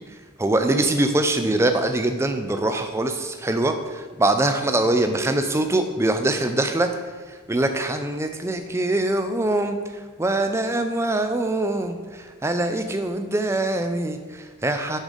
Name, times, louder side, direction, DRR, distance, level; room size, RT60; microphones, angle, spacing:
voice 1, 0.4-6.9 7.3-15.0, right 2 dB, 15° right, 7 dB, 0.3 m, -23 dB
6.2 x 3.9 x 5.1 m, 1.4 s
head